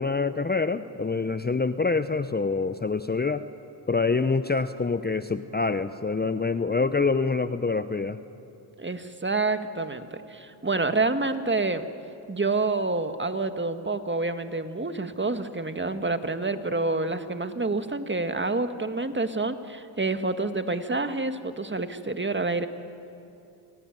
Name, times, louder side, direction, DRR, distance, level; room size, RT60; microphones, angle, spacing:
voice 1, 0.0-3.4 3.9-8.2, left 4 dB, 20° left, 12 dB, 0.9 m, -26 dB
voice 2, 8.8-11.9 12.3-22.7, right 3 dB, 25° right, 9 dB, 1.9 m, -28 dB
28.0 x 16.5 x 9.2 m, 2.7 s
supercardioid pair, 45°, 48 cm